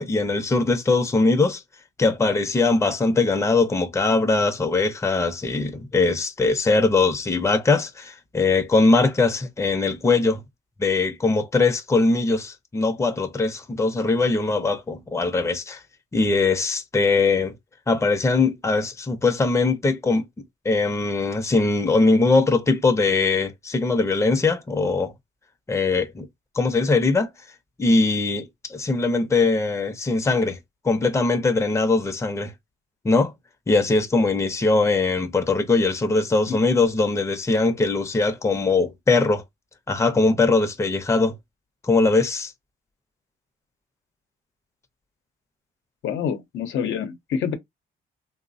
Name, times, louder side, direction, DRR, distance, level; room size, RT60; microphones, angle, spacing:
voice 1, 0.0-1.6 2.0-10.4 10.8-15.8 16.1-17.5 17.9-20.3 20.6-25.1 25.7-26.3 26.6-27.3 27.8-30.6 30.8-32.5 33.0-33.3 33.7-39.4 39.9-41.4 41.8-42.5, left 3 dB, 15° left, 0.5 m, -21 dB
voice 2, 46.0-47.5, left 7 dB, 80° left, 0.7 m, -27 dB
3.1 x 2.0 x 2.6 m
cardioid pair, 90°, 20 cm